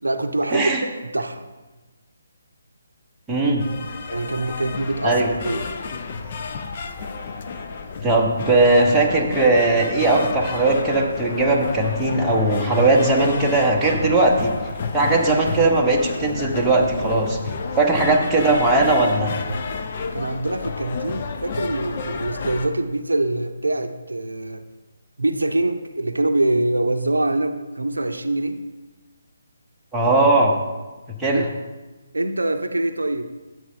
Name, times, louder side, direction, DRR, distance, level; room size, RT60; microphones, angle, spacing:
voice 1, 0.0-0.7 1.0-1.5 4.1-5.7 20.1-24.6 25.2-28.6 31.3-31.5 32.1-33.3, right 2 dB, 70° right, 8 dB, 0.6 m, -24 dB
voice 2, 0.5-0.8 3.3-3.7 5.0-5.3 8.0-14.5 14.9-17.4 17.7-19.3 29.9-30.5 31.1-31.4, right 2 dB, 5° right, -4 dB, 1.0 m, -18 dB
sound 1, 3.6-22.7, left 4 dB, 35° left, 0.7 m, -31 dB
11.0 x 7.6 x 3.3 m, 1.2 s
figure-of-eight pair, 145°, 0 cm